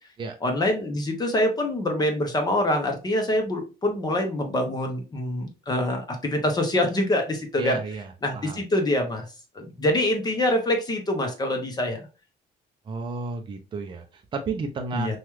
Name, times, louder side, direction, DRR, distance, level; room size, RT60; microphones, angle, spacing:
voice 1, 0.4-7.8 8.2-9.3 9.5-12.1 14.9-15.2, left 1 dB, 25° left, 4 dB, 0.8 m, -25 dB
voice 2, 7.6-8.6 12.9-15.2, right 3 dB, 30° right, 5 dB, 0.5 m, -32 dB
2.9 x 2.4 x 3.1 m, 0.31 s
cardioid pair, 110°, 17 cm